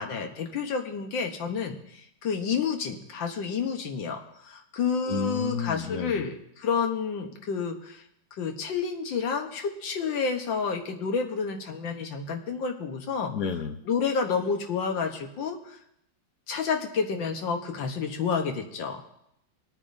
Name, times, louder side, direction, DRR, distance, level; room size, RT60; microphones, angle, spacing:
voice 1, 0.0-8.0 8.4-13.3 13.9-15.8 16.5-19.0, left 5 dB, 75° left, 4 dB, 1.9 m, -30 dB
voice 2, 5.1-6.2 13.2-13.8, left 7 dB, 60° left, 7 dB, 1.2 m, -31 dB
25.0 x 8.9 x 2.7 m, 0.78 s
omnidirectional pair, 2.1 m